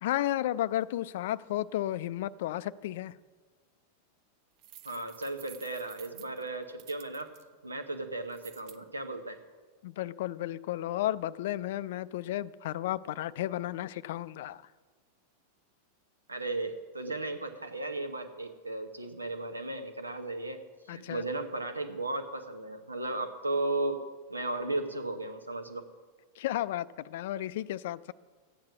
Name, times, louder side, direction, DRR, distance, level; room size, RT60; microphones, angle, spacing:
voice 1, 0.0-3.1 9.8-14.6 20.9-21.2 26.4-28.1, left 13 dB, 55° left, 0.3 m, -33 dB
sound 1, 4.6-7.4 8.3-8.8, right 11 dB, 40° right, 0.6 m, -52 dB
voice 2, 4.8-7.3 7.6-9.4 16.3-20.6 20.9-24.0 24.3-25.9, right 2 dB, 80° right, 1.0 m, -35 dB
13.0 x 9.0 x 5.9 m
figure-of-eight pair, 90°, 0 cm